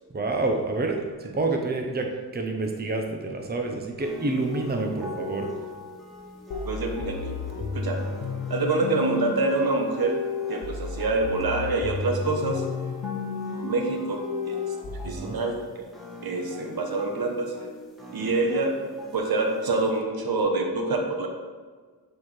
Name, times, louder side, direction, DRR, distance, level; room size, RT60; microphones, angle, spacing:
voice 1, 0.1-5.5 15.0-15.4, right 2 dB, 25° right, 2 dB, 0.8 m, -28 dB
sound 1, 4.0-20.0, left 3 dB, ahead, 1.6 m, -42 dB
sound 2, 6.5-15.1, left 4 dB, 60° left, 0.7 m, -33 dB
voice 2, 6.6-8.0 8.5-10.2 10.5-12.7 13.6-14.5 15.0-15.8 16.2-17.5 18.1-18.8 19.1-21.3, right 3 dB, 65° right, 3 dB, 1.0 m, -26 dB
8.2 x 4.5 x 3.2 m, 1.5 s
cardioid pair, 70°, 40 cm